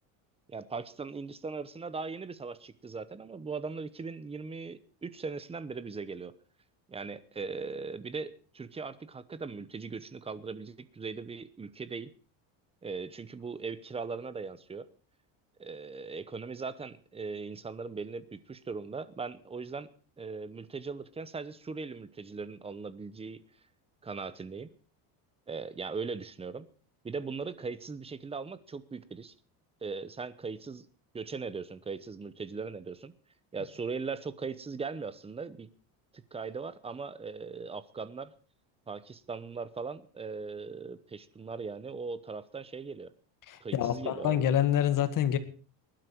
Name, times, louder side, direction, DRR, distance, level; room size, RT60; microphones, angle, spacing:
voice 1, 0.5-6.3 6.9-12.1 12.8-14.9 15.6-19.9 20.2-23.4 24.0-24.7 25.5-26.7 27.0-29.3 29.8-30.9 31.1-33.1 33.5-35.7 36.1-38.3 38.9-43.1 43.6-44.5, right 4 dB, 15° right, 15 dB, 0.8 m, -39 dB
voice 2, 43.5-45.4, left 10 dB, 45° left, 11 dB, 1.9 m, -27 dB
19.5 x 12.0 x 4.5 m, 0.38 s
cardioid pair, 145°, 45 cm